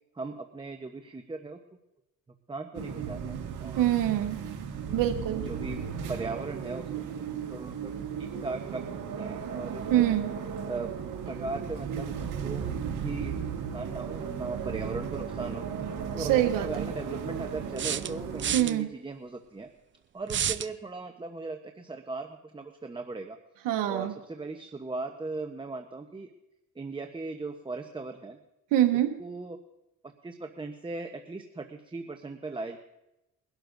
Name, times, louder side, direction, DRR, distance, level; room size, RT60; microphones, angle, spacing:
voice 1, 0.1-1.6 2.5-3.9 4.7-5.0 5.4-5.8 6.1-7.9 8.2-8.8 9.2-10.1 10.7-10.9 11.3-12.6 12.9-13.4 13.7-15.7 16.1-19.7 20.1-23.4 23.9-26.3 26.7-28.4 29.2-29.6 30.2-32.8, right 3 dB, 15° right, 5 dB, 0.9 m, -38 dB
sound 1, 2.7-18.5, right 7 dB, 70° right, 2.0 m, -35 dB
voice 2, 3.8-4.4 4.9-5.4 9.9-10.3 16.2-16.8 18.5-18.9 23.6-24.1 28.7-29.1, right 12 dB, 85° right, 5 dB, 1.2 m, -25 dB
sound 2, 15.7-15.8 17.8-18.7 20.3-20.7, right 9 dB, 35° right, 0.6 m, -30 dB
22.5 x 12.0 x 2.6 m, 0.93 s
cardioid pair, 85°, 32 cm